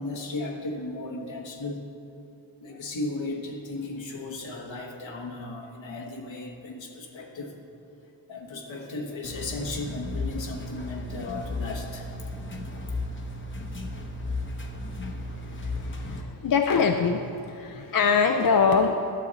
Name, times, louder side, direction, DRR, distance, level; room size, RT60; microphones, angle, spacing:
voice 1, 0.0-1.8 2.6-7.6 8.3-12.1, left 2 dB, 80° left, -1 dB, 1.3 m, -35 dB
sound 1, 9.2-16.2, left 2 dB, 25° left, 0.8 m, -34 dB
voice 2, 15.6-19.1, left 5 dB, 50° left, 5 dB, 0.5 m, -24 dB
11.5 x 6.7 x 4.0 m, 2.8 s
wide cardioid pair, 65°, 45 cm